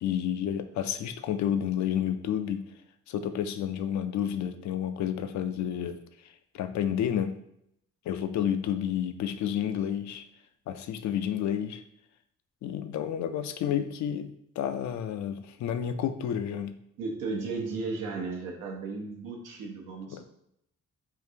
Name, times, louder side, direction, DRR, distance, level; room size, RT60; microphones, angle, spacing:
voice 1, 0.0-2.6 3.1-6.0 6.5-7.4 8.1-10.2 10.7-11.8 12.6-16.8 20.1-20.2, left 9 dB, 65° left, 9 dB, 0.5 m, -30 dB
voice 2, 17.0-20.2, right 4 dB, 80° right, 0 dB, 0.8 m, -35 dB
3.8 x 2.4 x 2.8 m, 0.75 s
supercardioid pair, 55°, 31 cm